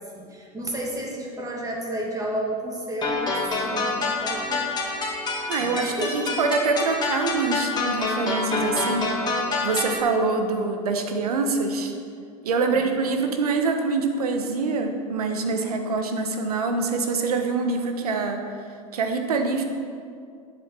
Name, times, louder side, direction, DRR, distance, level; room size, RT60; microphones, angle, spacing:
voice 1, 0.0-4.6 5.6-6.4 12.7-12.8, right 1 dB, 20° right, -1 dB, 2.3 m, -32 dB
sound 1, 3.0-10.0, left 3 dB, 25° left, 2.4 m, -27 dB
voice 2, 5.5-11.9 12.4-18.4 18.9-19.6, right 4 dB, 85° right, 5 dB, 1.2 m, -25 dB
11.5 x 7.4 x 4.6 m, 2.3 s
hypercardioid pair, 90°, 19 cm